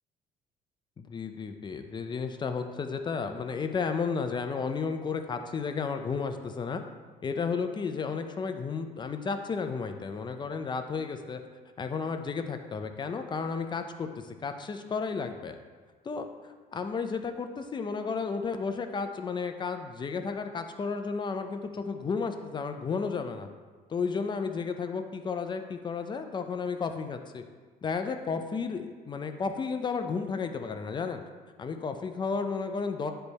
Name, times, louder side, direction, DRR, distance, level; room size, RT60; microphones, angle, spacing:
voice 1, 1.0-6.8 7.2-11.4 11.8-15.6 16.0-23.5 23.9-27.4 27.8-31.2 31.6-33.1, left 5 dB, 30° left, 7 dB, 0.6 m, -33 dB
9.7 x 3.4 x 4.1 m, 1.4 s
cardioid pair, 115°, 16 cm